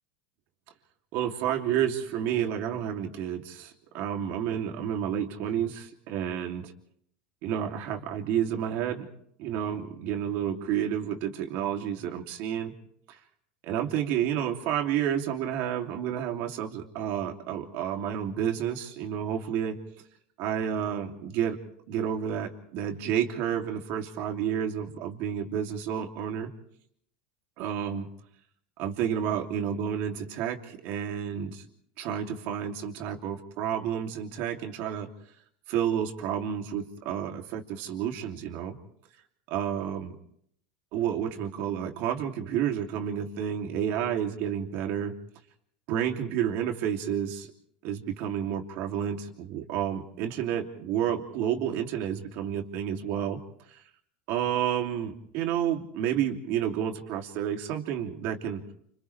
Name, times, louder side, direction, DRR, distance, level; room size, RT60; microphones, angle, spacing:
voice 1, 1.1-6.7 7.4-9.0 9.4-12.7 13.7-19.8 20.4-21.6 21.9-26.5 27.6-28.1 28.8-31.6 32.0-35.1 35.7-38.8 39.5-40.1 40.9-45.1 45.9-47.5 47.8-53.4 54.3-58.6, right 9 dB, 60° right, 3 dB, 2.9 m, -30 dB
29.0 x 27.5 x 3.4 m, 0.68 s
supercardioid pair, 115°, 4 cm